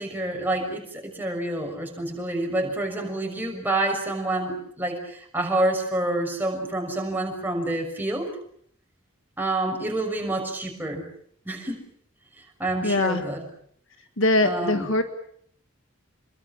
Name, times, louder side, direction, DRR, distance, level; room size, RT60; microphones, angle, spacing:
voice 1, 0.0-8.3 9.4-11.0 11.4-11.8 12.6-13.5 14.4-14.9, right 2 dB, 10° right, 1 dB, 6.3 m, -28 dB
voice 2, 12.8-13.2 14.2-15.0, left 2 dB, 65° left, 8 dB, 1.7 m, -22 dB
27.5 x 23.0 x 7.4 m, 0.66 s
head